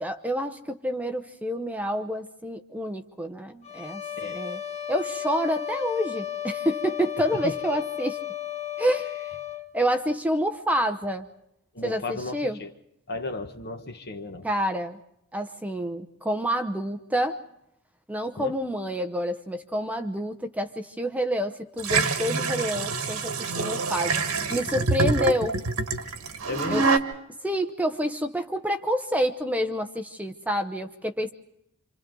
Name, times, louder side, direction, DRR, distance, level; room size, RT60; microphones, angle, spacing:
voice 1, 0.0-4.0 4.3-4.6 4.9-8.2 8.8-9.1 9.7-11.3 11.8-12.0 12.3-12.6 14.4-15.0 15.3-17.4 18.1-24.2 24.5-25.5 26.7-26.8 27.4-31.3, equal, 5° right, 6 dB, 0.8 m, -28 dB
sound 1, 3.6-9.7, left 11 dB, 30° left, 0.9 m, -34 dB
voice 2, 7.3-7.8 11.7-12.7 13.1-14.5 18.4-18.5 24.7-24.8 26.5-26.9, left 2 dB, 50° left, 7 dB, 1.3 m, -35 dB
sound 2, 21.8-27.0, right 3 dB, 80° right, 1.5 m, -26 dB
28.0 x 26.5 x 3.9 m, 0.80 s
head